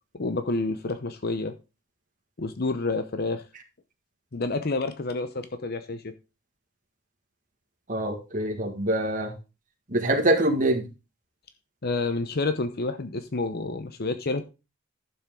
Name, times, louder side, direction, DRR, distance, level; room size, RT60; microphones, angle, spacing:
voice 1, 0.1-1.5 2.4-3.4 4.3-6.1 11.8-14.4, left 3 dB, 50° left, 0.8 m, -29 dB
voice 2, 7.9-9.3 9.9-10.8, right 1 dB, 40° right, 1.7 m, -24 dB
11.5 x 7.2 x 3.7 m
head